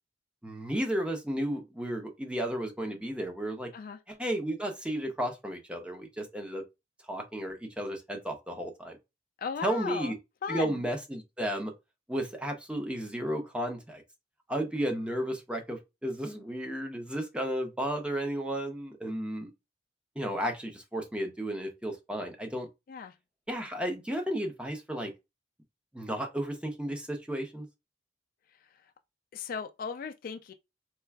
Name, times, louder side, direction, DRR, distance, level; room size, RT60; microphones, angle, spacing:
voice 1, 0.4-3.7 4.1-6.6 7.1-9.0 9.6-10.1 10.5-11.7 12.1-14.0 14.5-19.5 20.2-22.7 23.5-25.1 25.9-27.7, right 1 dB, 5° right, 0.6 m, -33 dB
voice 2, 9.4-10.1 10.4-10.8 22.9-23.2 29.3-30.5, left 6 dB, 50° left, 0.3 m, -36 dB
4.4 x 2.4 x 2.2 m
head